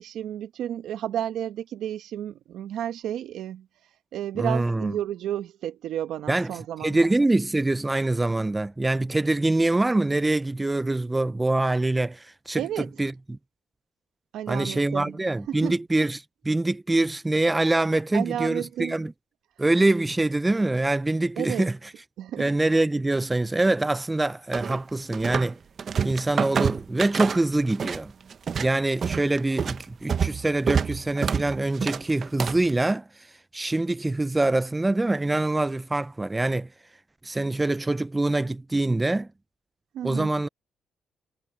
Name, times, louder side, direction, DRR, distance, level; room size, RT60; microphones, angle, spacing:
voice 1, 0.0-3.7 4.1-7.1 12.6-12.9 14.3-15.2 15.5-15.7 18.1-19.0 21.4-21.7 22.2-22.5 39.9-40.3, right 11 dB, 80° right, 1.4 m, -32 dB
voice 2, 4.3-4.9 6.3-13.4 14.5-19.1 19.6-21.9 22.4-25.6 26.0-28.1 28.6-33.3 33.5-36.7 37.2-39.3 40.0-40.5, right 2 dB, 15° right, 0.5 m, -24 dB
sound 1, 24.5-25.5 25.8-28.0 28.3-32.7, right 6 dB, 50° right, 1.0 m, -27 dB
cardioid pair, 90°, 0 cm